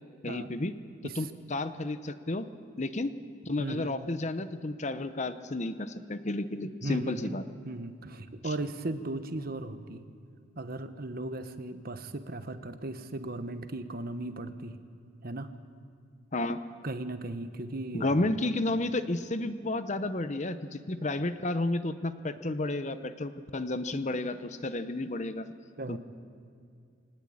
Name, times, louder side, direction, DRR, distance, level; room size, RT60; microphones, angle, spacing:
voice 1, 0.2-0.7 1.2-2.5 2.8-3.1 3.5-7.4 16.3-16.6 17.9-25.5 25.9-26.0, left 2 dB, 35° left, 11 dB, 0.8 m, -32 dB
voice 2, 3.6-3.9 6.8-7.3 7.6-10.0 10.6-14.8 15.2-15.5 16.8-18.3 25.8-26.0, right 2 dB, 50° right, 10 dB, 1.2 m, -37 dB
22.5 x 19.0 x 8.7 m, 2.4 s
head